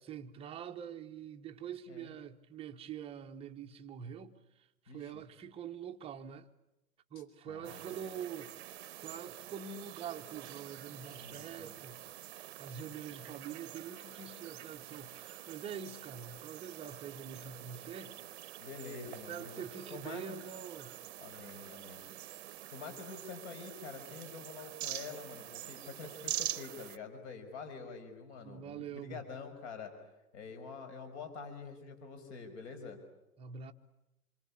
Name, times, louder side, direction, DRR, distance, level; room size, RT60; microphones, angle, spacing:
voice 1, 0.1-4.4 4.9-6.5 7.1-8.5 8.8-18.4 19.0-20.9 21.8-22.1 28.4-29.2 33.4-33.7, right 8 dB, 15° right, 1.0 m, -45 dB
voice 2, 4.9-5.2 7.5-8.0 11.1-11.8 18.6-19.6 19.9-20.4 21.2-22.1 22.7-29.9 30.3-33.0, left 5 dB, 50° left, 5.9 m, -47 dB
sound 1, 7.6-27.0, right 14 dB, 45° right, 1.0 m, -46 dB
27.0 x 24.5 x 8.6 m
hypercardioid pair, 140°, 44 cm